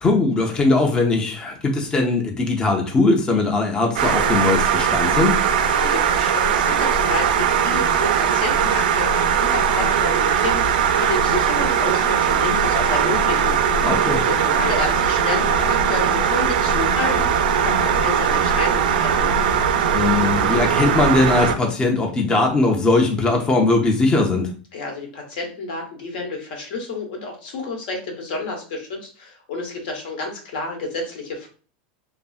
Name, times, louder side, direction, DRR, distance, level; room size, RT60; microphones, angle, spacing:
voice 1, 0.0-5.4 13.8-14.2 19.9-24.5, left 3 dB, 15° left, 2 dB, 0.4 m, -20 dB
sound 1, 4.0-21.6, right 7 dB, 85° right, 0.3 m, -19 dB
voice 2, 5.6-13.6 14.1-19.3 24.7-31.5, left 3 dB, 75° left, 1 dB, 1.0 m, -30 dB
2.7 x 2.4 x 2.4 m, 0.40 s
supercardioid pair, 140°, 5 cm